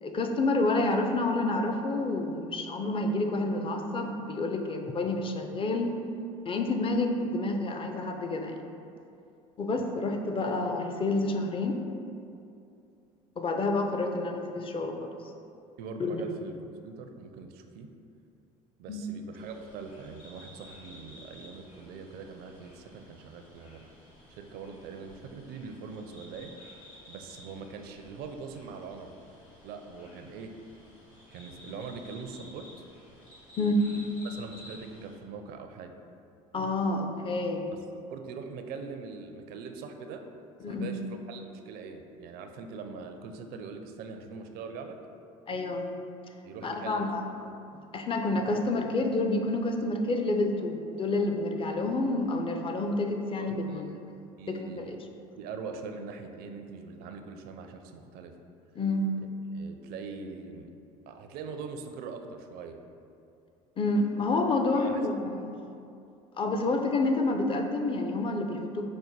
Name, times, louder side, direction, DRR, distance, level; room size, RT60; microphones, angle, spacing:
voice 1, 0.0-5.9 6.5-8.6 9.6-12.0 13.4-15.1 16.0-16.2 18.9-19.0 33.6-33.9 36.5-37.7 40.6-40.9 45.5-45.9 46.6-47.2 47.9-53.8 54.5-55.0 58.8-59.1 63.8-65.5 66.4-68.9, left 2 dB, 30° left, 4 dB, 0.5 m, -29 dB
voice 2, 15.8-16.5 16.8-17.9 18.8-23.9 24.3-26.5 27.1-29.1 29.6-30.5 31.3-32.7 34.2-35.9 37.7-40.2 40.6-45.0 46.4-47.1 47.4-47.5 53.4-53.8 54.4-55.0 55.4-58.4 59.5-60.7 61.1-62.8 64.7-65.0, right 5 dB, 65° right, 6 dB, 0.4 m, -42 dB
sound 1, 19.3-35.2, left 1 dB, 80° left, 1.4 m, -53 dB
5.2 x 2.2 x 4.5 m, 2.6 s
hypercardioid pair, 75°, 18 cm